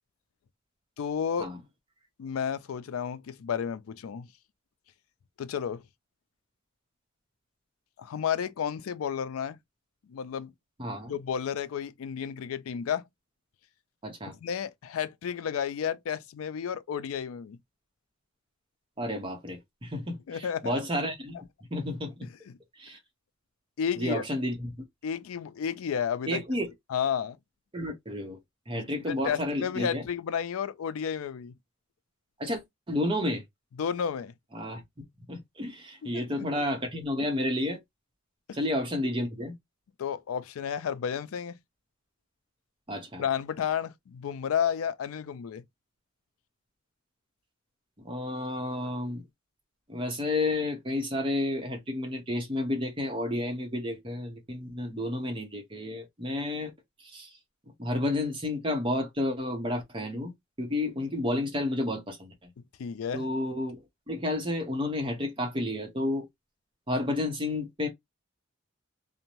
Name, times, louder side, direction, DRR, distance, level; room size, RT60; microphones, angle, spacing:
voice 1, 1.0-1.5 2.2-4.3 5.4-5.8 8.0-9.6 10.1-10.5 11.1-13.0 14.4-17.6 20.3-20.7 23.8-24.2 25.0-26.4 26.9-27.4 28.7-28.8 29.1-31.5 33.8-34.3 36.1-36.5 38.5-38.6 40.0-41.5 43.2-45.6 62.8-63.3, left 7 dB, 85° left, 0.4 m, -32 dB
voice 2, 10.8-11.1 14.0-14.4 19.0-21.4 21.7-22.3 22.8-23.0 24.0-24.7 26.3-26.7 27.7-28.4 28.7-30.0 32.4-32.6 32.9-33.4 34.5-34.8 35.3-37.8 38.5-39.5 42.9-43.2 48.0-49.2 49.9-56.7 57.0-57.3 57.8-60.3 60.6-62.3 63.1-63.8 64.1-66.3 66.9-67.9, left 1 dB, 25° right, 0.8 m, -31 dB
2.6 x 2.1 x 2.9 m
head